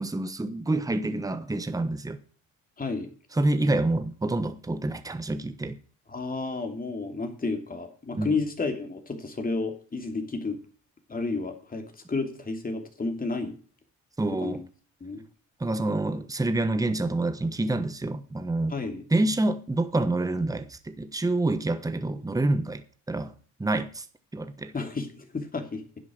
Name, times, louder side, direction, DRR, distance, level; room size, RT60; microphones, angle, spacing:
voice 1, 0.0-2.2 3.3-5.8 8.1-8.4 14.2-14.6 15.6-18.8 19.1-23.3 23.6-24.0 24.3-24.7, right 2 dB, 10° right, 1.2 m, -27 dB
voice 2, 2.8-3.1 6.1-10.6 11.1-13.6 14.4-14.6 15.0-15.2 18.7-19.0 24.7-25.8, left 3 dB, 30° left, 2.9 m, -31 dB
11.0 x 7.9 x 6.3 m
cardioid pair, 90°, 30 cm